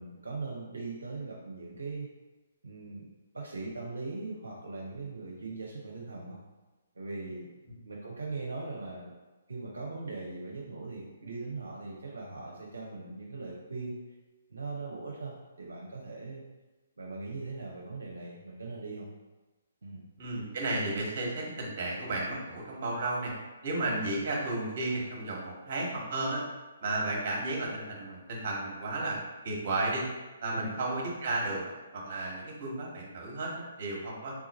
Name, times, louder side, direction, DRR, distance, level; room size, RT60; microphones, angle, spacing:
voice 1, 0.0-2.1 2.6-6.4 6.9-9.1 9.5-14.0 14.5-16.4 17.0-19.1 19.8-20.0 30.5-30.7, right 3 dB, 75° right, -3 dB, 0.6 m, -40 dB
voice 2, 20.2-23.3 23.6-26.4 26.8-29.2 29.4-30.0 30.4-31.6 31.9-34.3, right 2 dB, 45° right, -2 dB, 1.2 m, -33 dB
3.6 x 2.4 x 4.0 m, 1.2 s
figure-of-eight pair, 135°, 0 cm